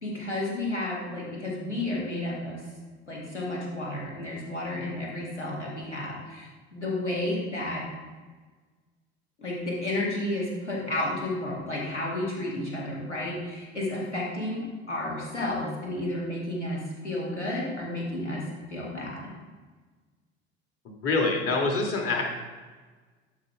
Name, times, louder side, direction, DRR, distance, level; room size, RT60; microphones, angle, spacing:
voice 1, 0.0-2.6 3.1-7.8 9.4-18.4 18.7-19.3, left 1 dB, 90° left, -3 dB, 2.2 m, -32 dB
voice 2, 20.8-22.2, left 3 dB, 40° left, 0 dB, 2.2 m, -26 dB
12.0 x 5.2 x 3.7 m, 1.4 s
figure-of-eight pair, 65°, 34 cm